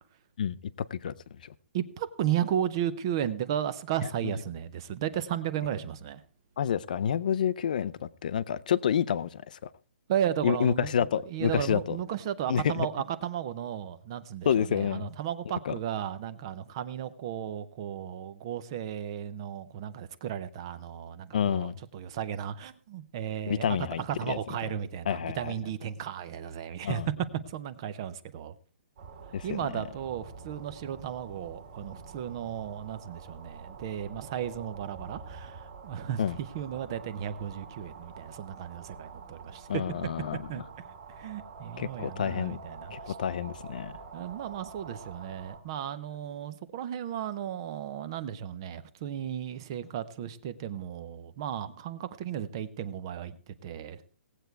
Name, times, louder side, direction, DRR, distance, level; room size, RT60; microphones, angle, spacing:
voice 1, 0.9-1.5 4.2-4.3 6.6-9.7 10.4-12.0 12.5-12.9 14.4-15.1 15.6-15.7 21.3-21.8 23.5-24.0 24.3-24.7 25.1-25.5 26.8-27.1 29.3-29.8 36.2-36.4 39.7-40.6 41.8-42.6 42.9-44.0, left 8 dB, 35° left, 0.5 m, -29 dB
voice 2, 1.7-6.2 10.1-10.9 11.3-23.6 24.0-27.0 27.5-28.5 29.4-36.2 36.5-39.8 40.5-40.6 41.2-43.2 44.1-54.2, right 10 dB, 20° right, 0.5 m, -34 dB
sound 1, 29.0-45.6, right 5 dB, 35° right, 1.9 m, -47 dB
18.0 x 8.1 x 4.5 m
hypercardioid pair, 180°, 8 cm